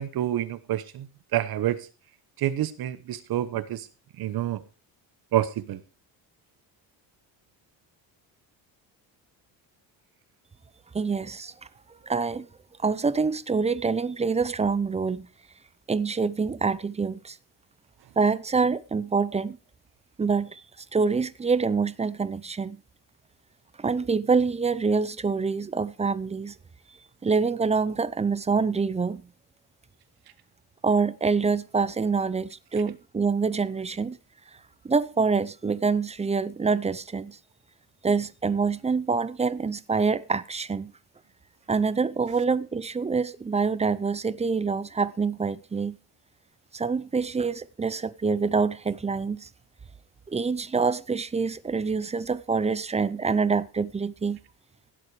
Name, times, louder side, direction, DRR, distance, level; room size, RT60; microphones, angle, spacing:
voice 1, 0.0-1.9 2.4-3.9 4.2-4.6 5.3-5.8, right 12 dB, 60° right, 1.1 m, -28 dB
voice 2, 10.9-11.5 12.0-12.5 12.8-15.3 15.9-17.4 18.2-19.6 20.2-20.6 20.9-22.8 23.8-26.5 27.2-29.2 30.8-34.2 34.8-37.4 38.0-40.9 41.7-46.0 46.7-49.5 50.3-54.4, right 4 dB, 15° right, 0.6 m, -26 dB
16.5 x 7.7 x 4.8 m
cardioid pair, 135°, 41 cm